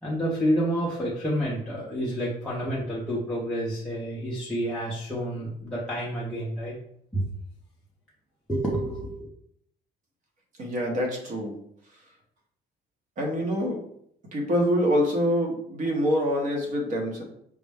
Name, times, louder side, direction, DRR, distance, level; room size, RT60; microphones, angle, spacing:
voice 1, 0.0-6.7 7.1-7.2 8.5-9.3, equal, 5° left, -7 dB, 0.6 m, -29 dB
voice 2, 10.6-11.5 13.2-13.8 14.3-17.2, equal, 45° right, 0 dB, 1.0 m, -25 dB
5.0 x 2.1 x 3.4 m, 0.69 s
cardioid pair, 165°, 18 cm